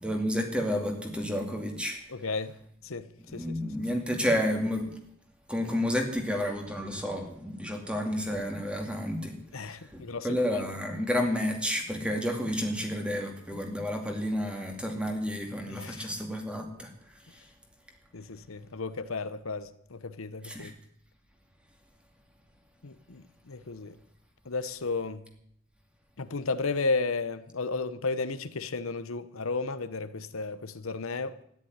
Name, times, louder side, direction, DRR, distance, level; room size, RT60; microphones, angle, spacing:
voice 1, 0.0-2.0 3.3-4.9 5.5-16.9 20.4-20.7, equal, 5° right, 2.5 m, -31 dB
voice 2, 2.1-2.6 2.8-3.5 9.5-10.6 15.7-16.1 18.1-20.7 22.8-24.0 24.4-25.2 26.2-31.4, left 3 dB, 85° left, 0.9 m, -33 dB
13.5 x 11.0 x 9.6 m
head